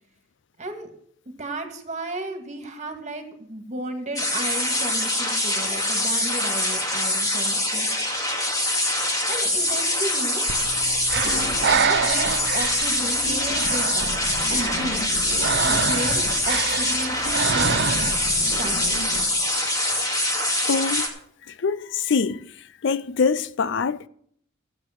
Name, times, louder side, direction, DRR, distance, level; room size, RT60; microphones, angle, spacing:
voice 1, 0.6-0.9 1.4-7.9 9.3-10.4 11.1-14.1 14.5-15.1 15.6-17.9 18.6-19.0, right 1 dB, 35° right, 2.0 m, -34 dB
sound 1, 4.2-21.1, left 1 dB, 20° left, 2.2 m, -24 dB
Breathing, 10.5-18.4, right 6 dB, 55° right, 0.7 m, -27 dB
sound 2, 11.2-12.5 12.8-19.2, left 1 dB, 40° left, 2.7 m, -35 dB
voice 2, 20.7-21.1 21.5-22.5 22.8-24.1, left 5 dB, 65° left, 0.5 m, -24 dB
13.5 x 8.1 x 5.9 m
head